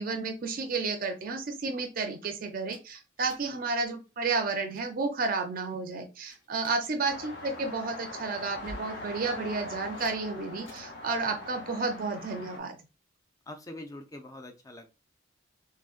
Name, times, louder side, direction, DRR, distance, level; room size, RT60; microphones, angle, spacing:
voice 1, 0.0-12.8, right 4 dB, 45° right, 5 dB, 0.4 m, -32 dB
sound 1, 2.7-3.6 3.8-4.1 4.4-4.9 5.4-5.8 6.2-6.9 8.5-8.9 9.9-10.2 10.7-11.0, equal, 75° left, 1.2 m, -49 dB
sound 2, 7.1-12.6, left 2 dB, 60° left, 0.7 m, -42 dB
voice 2, 13.5-14.9, left 1 dB, 15° left, 4 dB, 0.4 m, -44 dB
3.6 x 2.1 x 2.4 m, 0.30 s
head